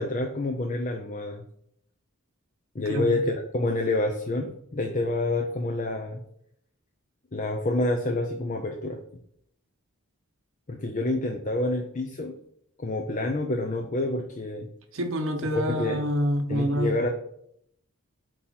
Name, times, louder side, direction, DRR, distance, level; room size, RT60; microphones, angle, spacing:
voice 1, 0.0-1.4 2.7-6.2 7.3-9.0 10.7-12.3 12.8-14.7 15.5-16.0 16.5-17.1, left 2 dB, 35° left, 3 dB, 0.7 m, -28 dB
voice 2, 2.9-3.2 14.9-16.9, equal, 65° right, 3 dB, 1.0 m, -27 dB
8.3 x 3.1 x 5.8 m, 0.69 s
head